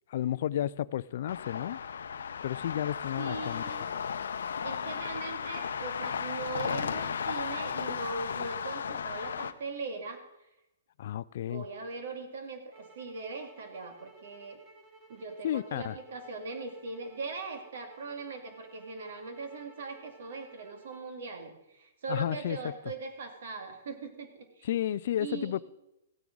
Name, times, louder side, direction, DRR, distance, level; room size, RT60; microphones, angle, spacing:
voice 1, 0.1-1.8 2.4-3.6 11.0-11.7 15.4-15.9 22.1-22.6 24.6-25.6, left 11 dB, 50° left, 0.4 m, -32 dB
sound 1, 1.3-9.5, left 7 dB, 90° left, 0.7 m, -35 dB
voice 2, 3.2-3.9 4.6-10.2 11.5-14.6 15.1-24.7 25.2-25.6, right 4 dB, 65° right, 2.3 m, -40 dB
sound 2, 12.7-21.1, right 2 dB, 15° right, 1.4 m, -56 dB
16.0 x 9.3 x 3.9 m
hypercardioid pair, 165°, 0 cm